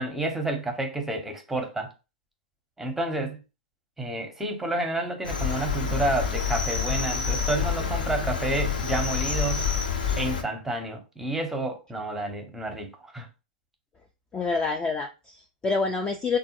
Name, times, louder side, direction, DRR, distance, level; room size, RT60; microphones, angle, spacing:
voice 1, 0.0-1.9 2.8-3.4 4.0-9.6 10.2-13.3, right 2 dB, 5° right, 0.7 m, -30 dB
Cricket, 5.2-10.4, left 6 dB, 65° left, 0.7 m, -27 dB
voice 2, 14.3-16.4, left 4 dB, 15° left, 0.3 m, -27 dB
3.4 x 2.1 x 2.9 m
figure-of-eight pair, 100°, 5 cm